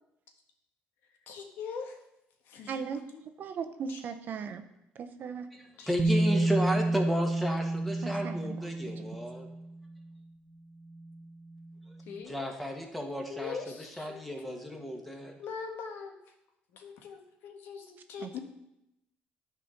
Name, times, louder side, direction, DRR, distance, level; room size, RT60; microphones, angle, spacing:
voice 1, 1.3-1.9 2.5-2.8 3.1-3.2 3.9-4.0 5.8-6.4 12.1-12.4 13.3-14.7 15.4-16.1 16.7-18.4, left 5 dB, 75° left, 4 dB, 1.4 m, -42 dB
voice 2, 2.7-3.0 3.4-4.6 5.0-5.5 8.0-8.6 9.0-9.2 18.2-18.4, right 6 dB, 55° right, 9 dB, 0.8 m, -38 dB
voice 3, 5.5-9.5 12.3-15.3, equal, ahead, 1 dB, 1.8 m, -34 dB
Bass guitar, 6.0-9.9 11.1-11.2, right 2 dB, 15° right, 0.8 m, -29 dB
10.0 x 4.3 x 6.5 m, 0.85 s
cardioid pair, 90°, 4 cm